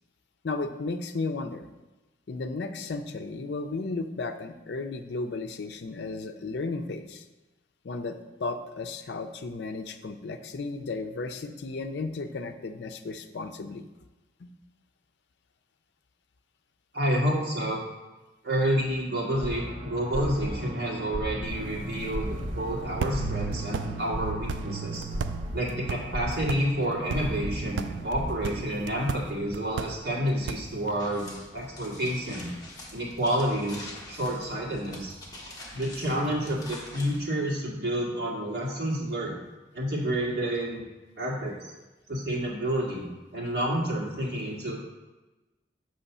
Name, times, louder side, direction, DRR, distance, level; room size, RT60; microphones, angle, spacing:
voice 1, 0.4-1.7 2.3-7.2 7.8-13.9 14.4-14.5, left 3 dB, 65° left, 7 dB, 0.5 m, -34 dB
voice 2, 16.9-17.8 18.4-25.0 25.5-32.5 32.9-35.1 35.7-39.4 39.7-40.9 41.2-41.5 42.1-43.0 43.3-44.7, equal, 60° right, -4 dB, 1.7 m, -29 dB
sound 1, 19.3-28.6, right 1 dB, 35° right, 0.7 m, -35 dB
sound 2, 21.4-31.0, right 5 dB, 80° right, 0.4 m, -38 dB
sound 3, 31.0-37.2, left 2 dB, 20° left, 1.0 m, -45 dB
7.0 x 3.1 x 5.4 m, 1.1 s
head